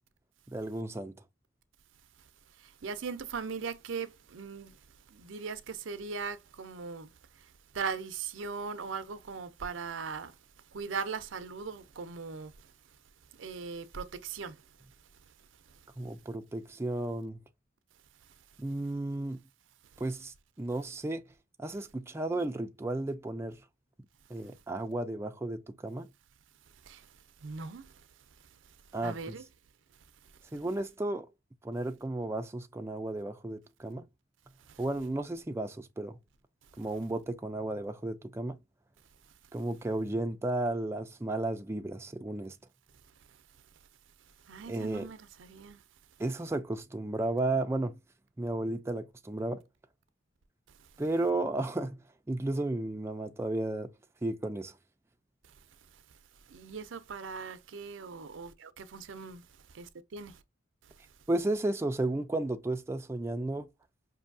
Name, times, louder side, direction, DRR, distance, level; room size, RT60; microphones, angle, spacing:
voice 1, 0.5-1.1 16.0-17.4 18.6-19.4 20.0-21.3 21.6-23.6 24.3-26.1 28.9-29.3 30.5-31.3 31.6-34.1 34.8-36.2 36.8-38.6 39.5-42.6 44.7-45.1 46.2-48.0 48.4-49.6 51.0-52.0 52.3-53.9 54.2-54.7 61.3-63.7, right 2 dB, 15° right, 0.4 m, -33 dB
voice 2, 2.6-4.8 5.1-10.4 10.7-12.7 13.3-14.6 26.8-27.1 27.4-28.0 29.0-29.4 34.7-34.8 44.4-45.8 56.5-59.4 59.7-60.4, right 5 dB, 75° right, 0.5 m, -39 dB
5.3 x 2.7 x 2.6 m
head